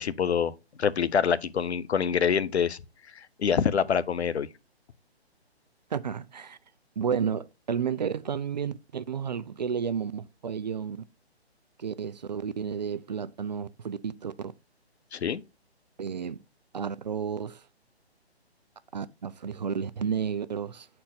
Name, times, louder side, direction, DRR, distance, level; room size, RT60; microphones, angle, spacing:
voice 1, 0.0-2.8 3.2-4.5 15.1-15.4, left 7 dB, 75° left, 0.7 m, -26 dB
voice 2, 5.9-6.6 7.0-11.0 11.8-14.5 16.0-16.4 16.7-17.6 18.9-20.9, right 7 dB, 40° right, 0.4 m, -32 dB
7.4 x 4.4 x 4.0 m
figure-of-eight pair, 145°, 33 cm